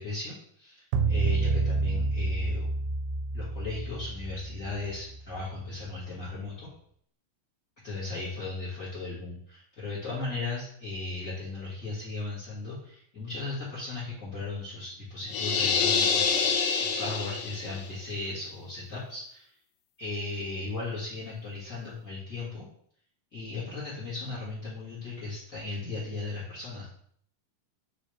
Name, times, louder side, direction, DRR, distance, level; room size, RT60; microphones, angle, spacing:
voice 1, 0.0-2.7 3.3-6.7 7.8-19.5 20.0-22.7 23.3-26.8, left 3 dB, 55° left, -9 dB, 0.9 m, -36 dB
sound 1, 0.9-5.4, right 3 dB, 90° right, 2.2 m, -29 dB
sound 2, 15.3-17.9, left 6 dB, 85° left, 2.2 m, -26 dB
4.8 x 3.1 x 3.1 m, 0.64 s
omnidirectional pair, 3.8 m